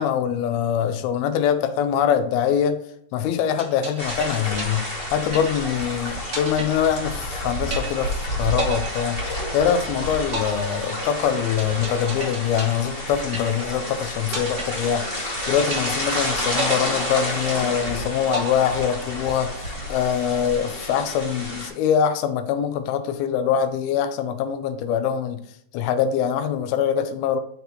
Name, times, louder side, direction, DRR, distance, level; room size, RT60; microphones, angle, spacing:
voice 1, 0.0-2.8 3.1-9.2 9.5-19.5 19.9-25.4 25.7-27.4, left 8 dB, 85° left, 10 dB, 2.6 m, -23 dB
sound 1, 3.6-5.9 6.3-7.4 7.7-8.2 8.6-9.8 10.3-13.9 14.3-15.4 15.7-16.2 16.6-17.8 18.3-19.3, right 3 dB, 85° right, 0.7 m, -33 dB
sound 2, 4.0-21.7, left 1 dB, 25° left, 1.1 m, -30 dB
6.9 x 6.1 x 2.9 m, 0.70 s
omnidirectional pair, 4.4 m